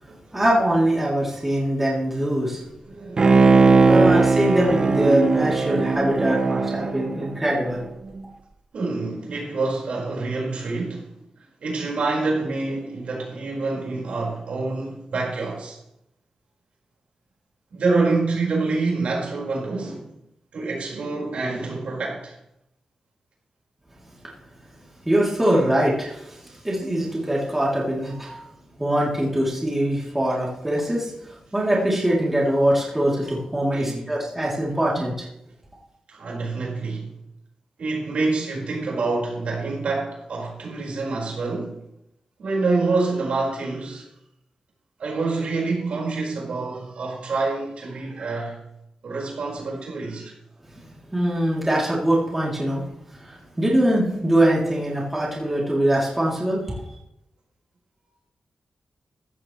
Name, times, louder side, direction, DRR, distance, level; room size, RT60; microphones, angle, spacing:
voice 1, 0.3-2.7 3.8-7.8 25.0-28.5 28.8-35.3 50.7-50.8 51.1-52.9 53.1-56.7, right 1 dB, 10° right, 3.1 m, -22 dB
voice 2, 2.8-3.9 8.7-15.8 17.7-20.1 20.5-22.3 33.7-34.2 34.9-35.0 36.1-37.1 37.8-41.8 42.4-44.1 45.0-48.6 49.0-50.3, right 3 dB, 75° right, 5.0 m, -27 dB
Bowed string instrument, 3.2-7.8 8.2-8.3, right 4 dB, 40° right, 0.8 m, -19 dB
16.0 x 13.5 x 3.2 m
wide cardioid pair, 180°, 2 cm